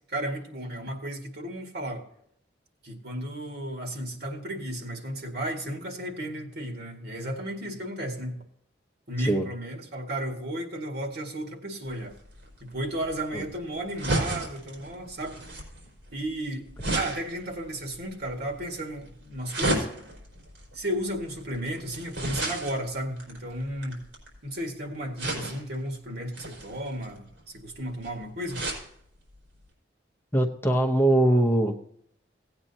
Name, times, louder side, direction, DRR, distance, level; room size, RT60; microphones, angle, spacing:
voice 1, 0.0-2.0 2.8-8.4 9.1-12.1 12.6-15.4 16.1-16.7 16.9-19.9 20.7-24.0 24.4-28.6, right 1 dB, 60° right, 2 dB, 1.9 m, -34 dB
sound 1, 11.9-24.5 25.2-25.8 26.3-28.9 29.3-29.4 29.7-29.8, right 2 dB, 85° right, 4.4 m, -34 dB
voice 2, 30.3-31.7, right 1 dB, 10° left, 1 dB, 0.8 m, -22 dB
17.0 x 8.9 x 2.8 m, 0.71 s
head